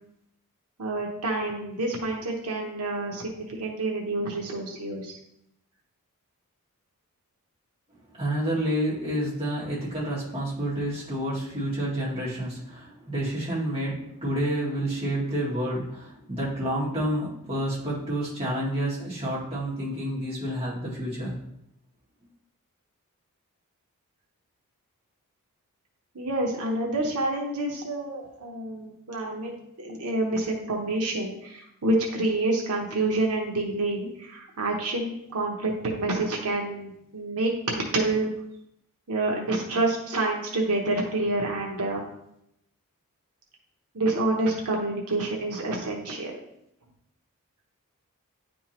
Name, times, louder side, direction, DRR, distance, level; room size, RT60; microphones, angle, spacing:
voice 1, 0.8-5.2 26.1-29.5 29.8-38.3 39.1-42.0 43.9-46.3, right 2 dB, 90° right, 0 dB, 1.0 m, -28 dB
voice 2, 8.1-21.4, right 1 dB, 25° right, -8 dB, 2.1 m, -29 dB
9.6 x 3.6 x 3.0 m, 0.78 s
head